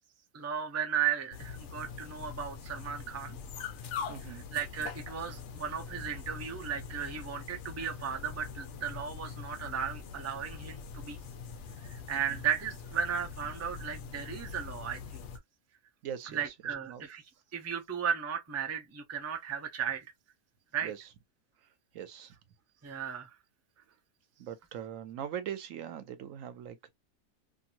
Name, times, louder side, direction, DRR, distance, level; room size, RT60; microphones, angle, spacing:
voice 1, 0.3-3.4 4.3-11.2 11.8-15.2 16.3-17.2 17.5-20.0 20.7-20.9 22.8-23.3, right 8 dB, 20° right, 0.4 m, -35 dB
sound 1, 1.3-15.4, left 6 dB, 65° left, 0.9 m, -43 dB
voice 2, 4.1-4.4 12.3-12.4 16.0-16.5 16.9-17.0 20.8-21.0 21.9-22.3 24.4-26.9, right 9 dB, 75° right, 1.0 m, -41 dB
2.9 x 2.6 x 2.4 m
omnidirectional pair, 1.4 m